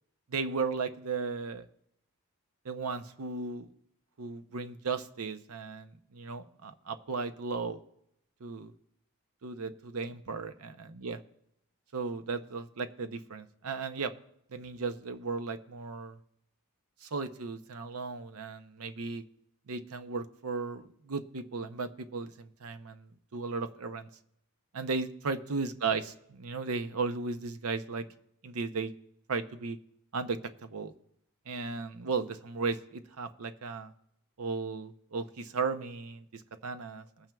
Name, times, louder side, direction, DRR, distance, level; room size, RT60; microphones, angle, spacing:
voice 1, 0.3-1.6 2.6-3.7 4.2-7.8 8.4-8.7 9.4-10.7 11.0-11.2 11.9-14.1 14.5-16.2 17.0-19.2 19.7-24.1 24.7-28.0 28.4-28.9 29.3-29.8 30.1-30.9 31.5-33.9 34.4-37.1, right 4 dB, 80° right, 9 dB, 0.7 m, -35 dB
21.0 x 9.0 x 2.3 m, 0.76 s
head